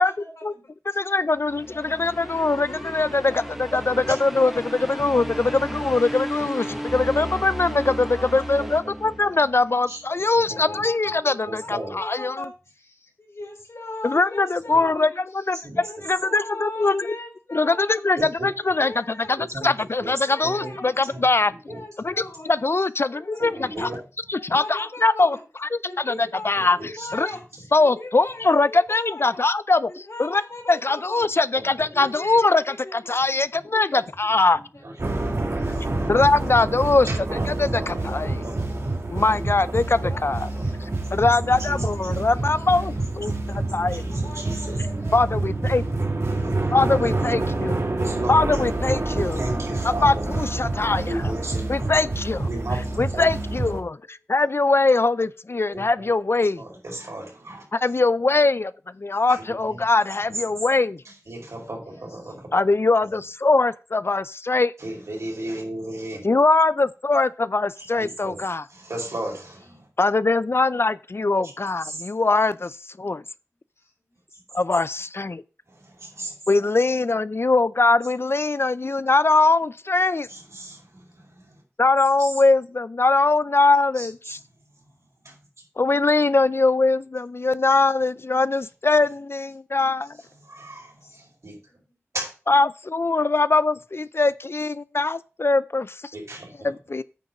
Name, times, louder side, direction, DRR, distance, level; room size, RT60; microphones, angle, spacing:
voice 1, 0.0-1.1 1.8-4.6 6.3-8.6 10.3-18.1 18.7-19.7 20.1-21.2 21.7-22.6 23.1-23.9 24.5-25.4 25.8-29.4 29.9-31.3 31.8-33.2 33.7-34.0 34.3-34.8 35.5-36.4 37.9-38.5 39.9-40.8 41.5-43.1 44.0-45.2 46.2-46.8 61.0-61.1 61.9-62.1 62.6-62.8 73.8-73.9 74.3-74.6 76.3-76.4 91.0-91.2, left 2 dB, 75° left, 3.3 m, -40 dB
voice 2, 0.9-12.4 14.0-15.1 15.3-15.6 16.0-17.2 17.5-18.2 18.4-19.0 19.3-19.4 19.6-21.5 22.0-22.1 22.5-23.9 24.3-25.4 25.6-25.7 26.1-27.3 27.7-29.9 30.2-30.4 30.7-34.6 36.1-37.1 37.6-38.3 39.1-40.5 40.8-44.0 45.1-45.9 46.7-47.8 48.3-49.3 50.0-51.1 51.7-52.5 53.0-53.9 54.3-56.6 57.8-58.7 59.0-61.0 62.5-64.7 66.2-68.6 70.0-73.2 74.5-75.4 76.5-80.3 81.8-84.4 85.8-90.2 92.5-96.0 96.6-97.0, left 3 dB, 55° left, 0.4 m, -21 dB
sound 1, 1.4-9.7, equal, 5° right, 1.2 m, -34 dB
voice 3, 8.6-9.4 9.9-11.1 11.4-12.0 14.7-14.9 15.5-16.0 18.2-18.5 19.4-19.7 20.0-20.1 20.4-20.8 21.1-21.3 21.7-22.2 23.4-24.0 26.5-27.1 31.5-31.7 34.0-34.1 34.5-36.2 37.0-39.5 41.1-41.3 41.6-42.2 43.3-43.4 43.6-44.8 46.2-46.7 47.9-48.5 49.2-50.3 51.0-52.0 52.5-53.6 55.7-56.1 56.6-57.6 59.3-59.9 60.3-60.4 61.0-62.5 63.0-63.1 64.8-66.3 67.8-68.4 68.7-69.9 71.4-71.5 71.8-72.1 74.3-74.4 75.6-76.3 80.2-81.6 82.2-82.3 83.9-85.5 88.6-88.7 90.2-91.6 92.1-92.3 96.1-96.7, right 1 dB, 85° right, 4.5 m, -36 dB
sound 2, 35.0-53.8, right 2 dB, 65° right, 1.8 m, -27 dB
9.1 x 3.9 x 7.0 m
wide cardioid pair, 50°, 5 cm